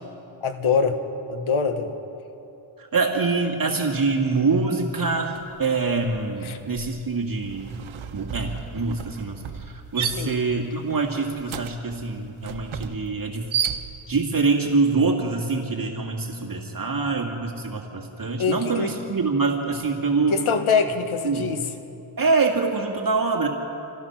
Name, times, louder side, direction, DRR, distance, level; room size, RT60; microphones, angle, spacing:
voice 1, 0.4-1.0 1.3-1.9 6.4-6.6 10.2-10.4 18.4-19.0 20.3-21.6, left 5 dB, 80° left, 7 dB, 1.6 m, -23 dB
voice 2, 2.8-7.8 8.1-13.5 14.1-20.4 21.2-21.6 22.2-23.5, right 4 dB, 45° right, 1 dB, 2.1 m, -25 dB
sound 1, 5.3-5.6 5.9-14.3, right 8 dB, 75° right, 1.1 m, -33 dB
27.0 x 16.5 x 6.0 m, 2.9 s
cardioid pair, 75°, 49 cm